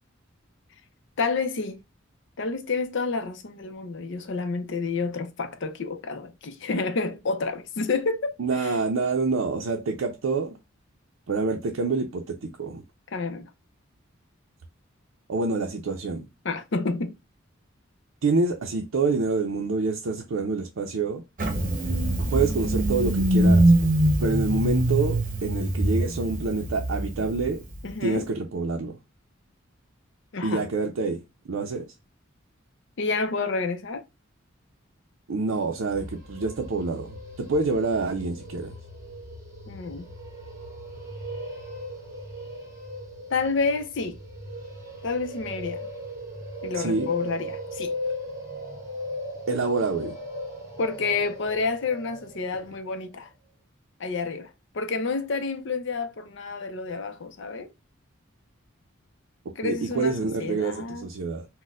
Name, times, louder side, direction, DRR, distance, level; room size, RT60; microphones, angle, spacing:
voice 1, 1.2-1.8 2.4-8.8 13.1-13.5 16.4-17.2 27.8-28.3 30.3-30.6 33.0-34.0 39.7-40.1 43.3-44.2 45.0-45.8 46.6-47.9 50.8-53.3 54.0-57.7 59.6-61.1, left 4 dB, 60° left, 0.5 m, -29 dB
voice 2, 8.4-10.6 11.3-12.8 15.3-16.3 18.2-21.2 22.3-23.7 24.2-27.6 28.0-29.0 30.4-31.2 31.5-31.9 35.3-38.7 46.7-47.1 49.5-50.1 59.6-61.5, right 3 dB, 75° right, 0.5 m, -27 dB
Engine starting, 21.4-27.9, right 1 dB, 40° right, 0.8 m, -23 dB
sound 1, 35.7-52.7, left 1 dB, 20° right, 1.4 m, -38 dB
4.0 x 2.1 x 2.4 m
head